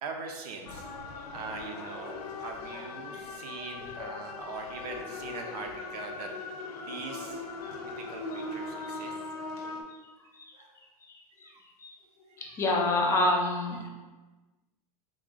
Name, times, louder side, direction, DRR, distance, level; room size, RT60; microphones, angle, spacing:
voice 1, 0.0-0.9 1.3-6.3 6.8-7.4 7.8-9.2 10.5-10.7 11.4-11.6 12.3-12.8 13.7-13.9, right 4 dB, 75° right, 3 dB, 0.7 m, -42 dB
sound 1, 0.7-9.8, left 3 dB, 70° left, 0.6 m, -40 dB
voice 2, 11.0-11.5 11.8-11.9 12.4-13.9, left 2 dB, 15° left, 1 dB, 0.4 m, -29 dB
3.7 x 2.4 x 3.7 m, 1.2 s
supercardioid pair, 155°, 20 cm